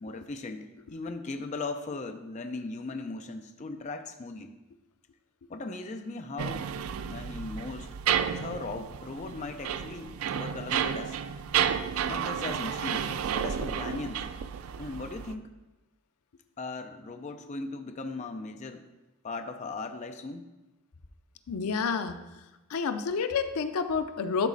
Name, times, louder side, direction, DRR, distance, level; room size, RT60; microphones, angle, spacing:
voice 1, 0.0-4.5 5.5-6.7 7.1-8.0 8.3-11.2 12.1-14.3 14.8-15.5 16.6-18.9 19.2-20.5, left 3 dB, 30° left, 6 dB, 0.4 m, -38 dB
sound 1, 6.4-15.3, right 8 dB, 75° right, 0.4 m, -31 dB
voice 2, 21.5-22.2 22.7-24.5, left 5 dB, 90° left, 10 dB, 0.5 m, -29 dB
12.0 x 4.1 x 3.9 m, 1.0 s
head